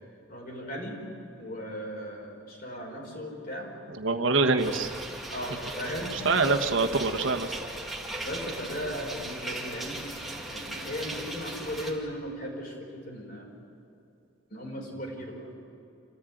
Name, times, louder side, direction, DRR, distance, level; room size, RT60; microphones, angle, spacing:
voice 1, 0.3-1.0 1.4-3.7 4.1-4.3 5.3-6.6 8.2-10.0 10.3-13.6 14.5-15.6, equal, 45° left, 0 dB, 4.7 m, -37 dB
voice 2, 4.0-4.9 6.2-7.5, right 3 dB, 75° right, 5 dB, 1.4 m, -25 dB
sound 1, 4.6-11.9, right 1 dB, ahead, 2.5 m, -38 dB
27.0 x 15.0 x 9.2 m, 2.7 s
head